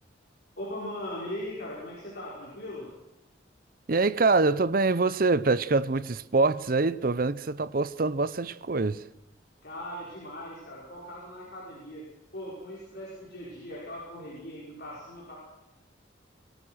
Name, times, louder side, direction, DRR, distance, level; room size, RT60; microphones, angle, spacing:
voice 1, 0.6-2.9 9.6-15.4, left 1 dB, 55° left, 5.8 m, -39 dB
voice 2, 3.9-9.0, right 3 dB, 50° right, 0.7 m, -25 dB
23.5 x 17.5 x 6.4 m
head